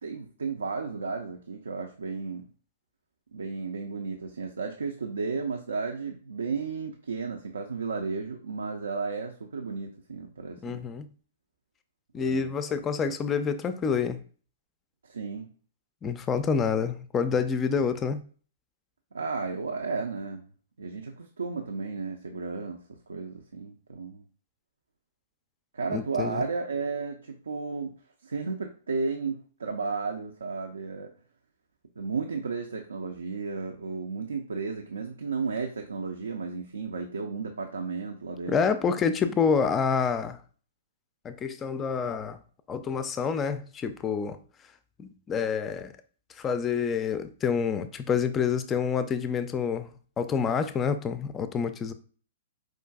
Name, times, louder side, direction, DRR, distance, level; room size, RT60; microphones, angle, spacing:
voice 1, 0.0-2.5 3.3-10.9 12.2-12.8 15.0-15.5 19.1-20.5 20.8-24.3 25.7-27.9 28.2-31.1 32.0-38.6, right 4 dB, 80° right, 0.4 m, -33 dB
voice 2, 10.6-11.1 12.1-14.2 16.0-18.2 25.9-26.4 38.5-40.4 41.2-42.4 42.7-44.4 45.0-45.9 46.4-51.9, left 6 dB, 20° left, 0.3 m, -28 dB
4.6 x 2.5 x 2.3 m
figure-of-eight pair, 115°, 0 cm